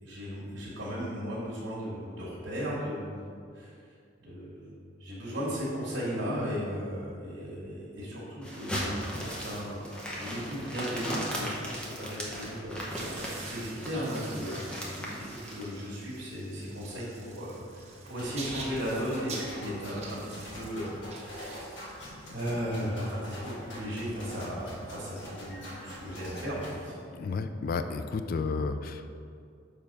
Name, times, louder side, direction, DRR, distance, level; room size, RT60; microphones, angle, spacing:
voice 1, 0.0-3.2 3.5-3.7 4.2-8.9 9.4-21.9 22.3-26.9, equal, 70° right, -9 dB, 1.5 m, -36 dB
sound 1, 8.4-15.7, equal, 5° left, 1.0 m, -37 dB
sound 2, 12.9-23.8, right 3 dB, 35° right, 1.1 m, -46 dB
sound 3, 18.2-26.8, equal, 65° left, 1.5 m, -44 dB
voice 2, 27.1-29.2, left 4 dB, 50° left, 9 dB, 0.3 m, -32 dB
6.7 x 3.7 x 5.3 m, 2.3 s
head